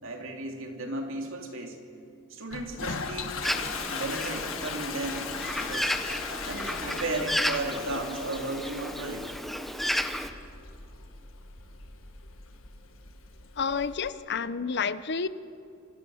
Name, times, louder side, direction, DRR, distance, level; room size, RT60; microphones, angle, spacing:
voice 1, 0.0-1.8 2.3-3.4 3.9-5.3 5.6-5.9 6.5-9.3, right 2 dB, 65° right, 3 dB, 3.1 m, -35 dB
Toilet flush, 2.5-14.1, left 5 dB, 70° left, 1.8 m, -39 dB
Bird, 3.4-10.3, equal, ahead, 1.0 m, -33 dB
voice 2, 13.6-15.3, left 5 dB, 55° left, 14 dB, 0.7 m, -29 dB
27.0 x 24.5 x 6.4 m, 2.6 s
head